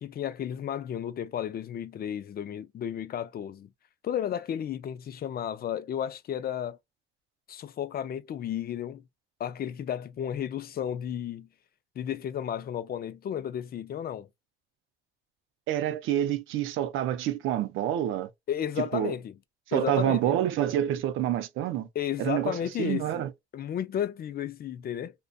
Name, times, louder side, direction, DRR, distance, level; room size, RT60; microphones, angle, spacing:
voice 1, 0.0-3.7 4.0-6.8 7.5-9.0 9.4-11.5 12.0-14.3 18.5-19.3 19.7-20.4 22.0-23.2 23.5-25.1, left 9 dB, 50° left, 0.4 m, -33 dB
voice 2, 15.7-18.3 18.8-19.1 19.7-21.9 22.2-23.3, right 11 dB, 90° right, 0.5 m, -28 dB
2.5 x 2.2 x 2.2 m
cardioid pair, 90°, 20 cm